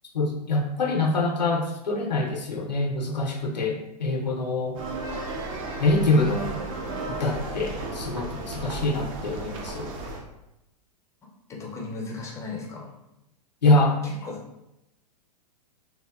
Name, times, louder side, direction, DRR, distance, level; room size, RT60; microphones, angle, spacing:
voice 1, 0.1-4.8 5.8-6.5 7.1-9.9 13.6-14.0, left 2 dB, 90° left, 0 dB, 0.5 m, -25 dB
sound 1, 4.7-10.2, right 2 dB, 55° right, 0.5 m, -34 dB
voice 2, 11.5-12.9 14.0-14.4, left 3 dB, 15° left, -1 dB, 0.4 m, -36 dB
2.9 x 2.1 x 2.2 m, 0.87 s
figure-of-eight pair, 105°, 21 cm